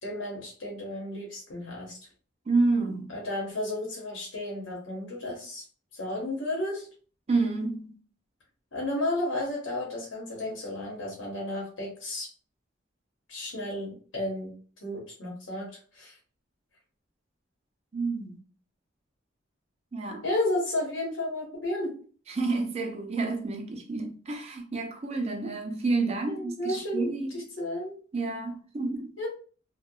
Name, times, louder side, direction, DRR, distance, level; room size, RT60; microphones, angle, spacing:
voice 1, 0.0-2.0 3.1-5.6 5.9-6.9 8.7-12.3 13.3-14.5 14.8-16.1 20.2-22.0 26.3-28.0 29.2-29.3, left 1 dB, 85° left, 0.9 m, -33 dB
voice 2, 2.5-3.2 7.3-8.0 17.9-18.4 19.9-20.2 22.3-27.3 28.1-29.1, right 3 dB, 35° right, 0.4 m, -29 dB
2.6 x 2.1 x 2.2 m
head